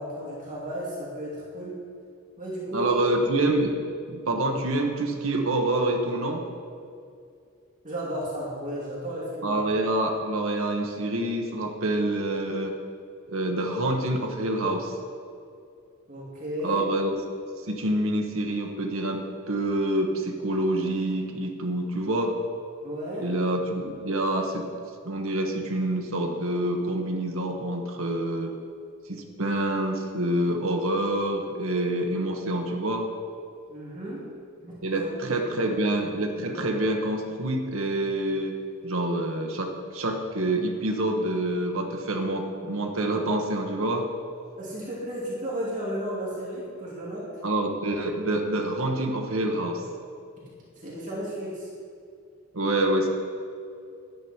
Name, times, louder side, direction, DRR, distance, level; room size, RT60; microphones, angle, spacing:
voice 1, 0.0-1.7 2.4-2.9 7.8-9.6 16.1-16.8 22.8-23.3 33.7-34.2 34.6-35.4 35.6-35.8 44.6-47.2 50.8-51.7, equal, 40° right, -6 dB, 2.7 m, -34 dB
voice 2, 2.7-3.7 4.1-6.4 9.4-12.8 13.3-15.0 16.6-17.2 17.7-22.3 23.2-24.7 25.0-28.5 29.1-33.1 34.8-44.1 47.4-49.8 52.5-53.1, right 1 dB, 80° right, 2 dB, 1.2 m, -27 dB
11.0 x 10.0 x 4.5 m, 2.4 s
head